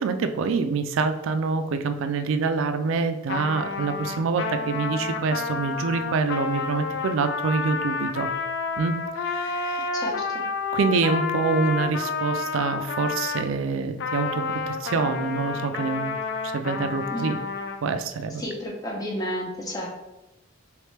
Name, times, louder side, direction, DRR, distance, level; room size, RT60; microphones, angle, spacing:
voice 1, 0.0-8.3 8.8-9.9 10.7-16.2 16.4-17.4 17.8-18.4, right 4 dB, 65° right, 9 dB, 0.3 m, -26 dB
Trumpet, 3.3-13.5 14.0-17.8, left 4 dB, 55° left, 0.3 m, -30 dB
voice 2, 9.9-10.4 17.1-17.3 18.4-19.9, equal, 15° left, -3 dB, 0.8 m, -31 dB
3.3 x 3.1 x 3.2 m, 0.94 s
head